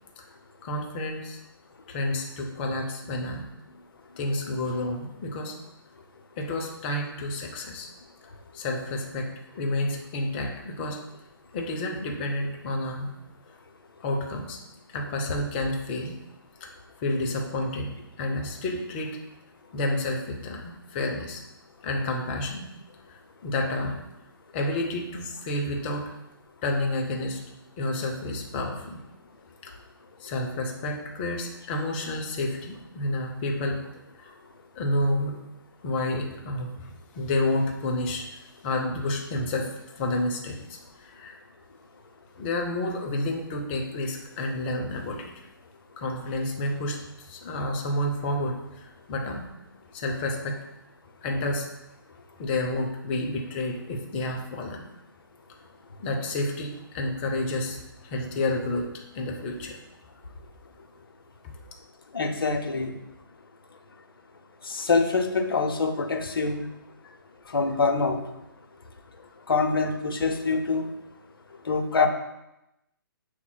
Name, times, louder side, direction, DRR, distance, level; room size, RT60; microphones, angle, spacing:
voice 1, 0.6-1.4 1.9-3.4 3.7-3.8 4.2-5.5 6.4-7.9 8.5-11.0 11.5-13.1 14.0-14.6 14.9-16.2 16.6-16.7 17.0-17.9 18.2-19.1 19.7-21.4 21.8-22.7 23.1-24.0 24.5-26.1 26.6-27.4 27.8-29.0 29.6-29.7 30.2-34.3 34.8-35.4 35.8-41.4 42.4-45.5 46.0-49.5 49.9-50.6 51.2-51.7 52.4-54.8 56.0-58.9 59.1-59.8, left 1 dB, 25° left, 1 dB, 0.6 m, -30 dB
voice 2, 62.1-62.9 64.6-66.7 67.5-68.2 69.5-70.8 71.7-72.1, left 4 dB, 75° left, 5 dB, 0.6 m, -25 dB
6.7 x 3.0 x 2.2 m, 0.90 s
figure-of-eight pair, 135°, 12 cm